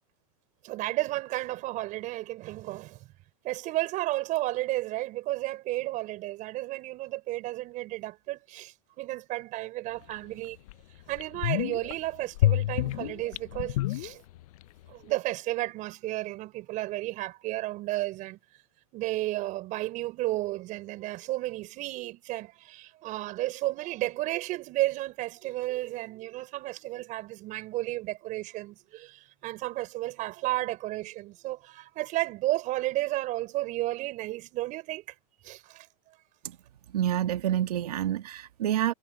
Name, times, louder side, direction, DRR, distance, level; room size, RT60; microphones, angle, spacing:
voice 1, 0.6-3.0 3.4-10.6 11.1-14.2 14.9-18.4 18.9-35.0 35.4-35.9, right 17 dB, 40° right, 5.9 m, -33 dB
sound 1, 10.1-10.2 10.7-10.8 11.1-11.9 12.4-14.6 14.9-15.0, left 15 dB, 65° left, 0.6 m, -28 dB
voice 2, 36.9-38.9, right 11 dB, 80° right, 1.6 m, -28 dB
hypercardioid pair, 125°, 19 cm